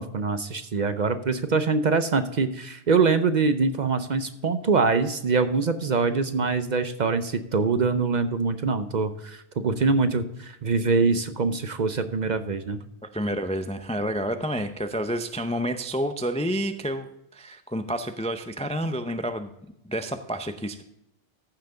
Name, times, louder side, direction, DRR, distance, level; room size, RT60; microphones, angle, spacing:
voice 1, 0.0-12.8, right 4 dB, 50° right, 10 dB, 0.7 m, -24 dB
voice 2, 13.0-17.1 17.3-19.5 19.8-20.8, equal, 10° left, 8 dB, 0.3 m, -29 dB
14.5 x 5.8 x 3.8 m, 0.83 s
omnidirectional pair, 1.1 m